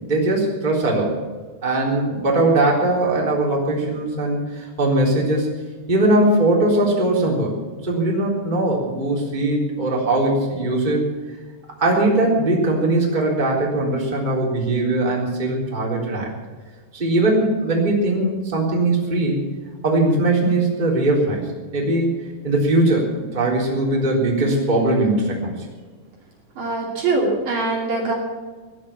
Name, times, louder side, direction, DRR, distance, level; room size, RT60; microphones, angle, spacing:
voice 1, 0.0-1.2 1.6-5.5 5.9-7.5 7.8-11.0 11.8-16.3 16.9-19.5 19.8-21.4 21.7-22.1 22.4-25.5, right 2 dB, 10° right, -3 dB, 3.4 m, -20 dB
voice 2, 26.6-28.1, right 3 dB, 50° right, -2 dB, 3.9 m, -22 dB
18.5 x 11.0 x 7.3 m, 1.4 s
omnidirectional pair, 5.1 m